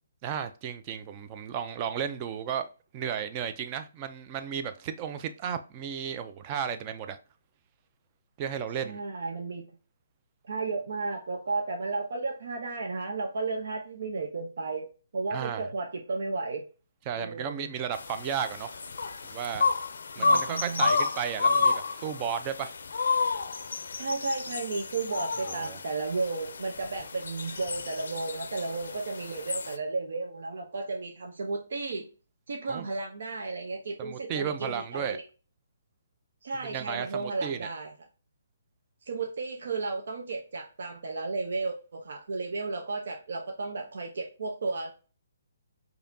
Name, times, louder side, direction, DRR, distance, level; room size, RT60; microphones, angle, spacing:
voice 1, 0.2-7.2 8.4-9.0 15.3-15.7 17.1-18.7 19.2-19.6 20.2-22.7 25.6-25.8 32.7-32.8 34.0-35.2 36.6-37.7, right 8 dB, 30° right, 0.5 m, -34 dB
voice 2, 8.8-9.6 10.5-14.8 15.1-16.6 17.2-17.7 20.2-20.9 23.9-32.0 32.5-35.2 36.4-37.9 39.1-44.9, right 3 dB, 65° right, 0.8 m, -33 dB
sound 1, 17.9-29.8, left 4 dB, 70° left, 0.4 m, -30 dB
4.9 x 2.8 x 2.7 m
hypercardioid pair, 150°, 0 cm